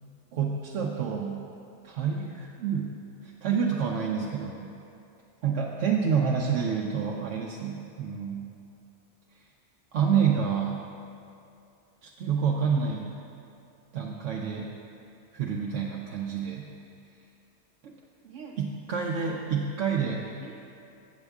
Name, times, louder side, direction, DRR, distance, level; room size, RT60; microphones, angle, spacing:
voice 1, 0.3-1.4 1.8-2.9 3.2-4.7 5.4-8.5 9.9-10.8 12.0-13.1 13.9-14.7 15.3-16.7 17.8-17.9 18.2-20.5, right 6 dB, 80° right, -2 dB, 0.9 m, -28 dB
8.0 x 7.9 x 3.4 m, 2.6 s
omnidirectional pair, 1.2 m